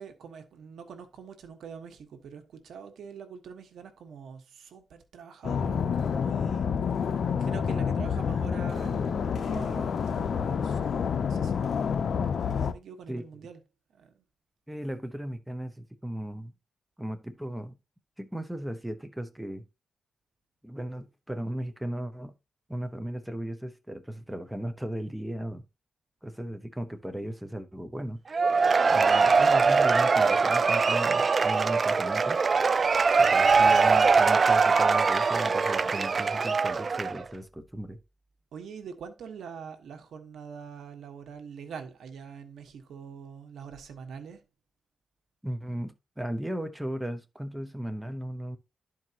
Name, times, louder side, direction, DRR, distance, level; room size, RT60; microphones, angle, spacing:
voice 1, 0.0-7.0 7.3-11.9 12.6-13.6 13.9-14.2 38.5-44.4, right 6 dB, 85° right, 1.3 m, -44 dB
sound 1, 5.4-12.7, left 6 dB, 65° left, 0.6 m, -28 dB
voice 2, 14.7-16.5 17.0-17.8 18.2-19.7 20.6-22.3 22.7-25.6 26.2-28.2 28.9-32.4 33.2-38.0 45.4-48.6, right 1 dB, 5° right, 0.8 m, -36 dB
Cheering / Applause / Crowd, 28.3-37.2, right 4 dB, 45° right, 0.3 m, -22 dB
12.0 x 4.6 x 2.9 m
cardioid pair, 95°, 0 cm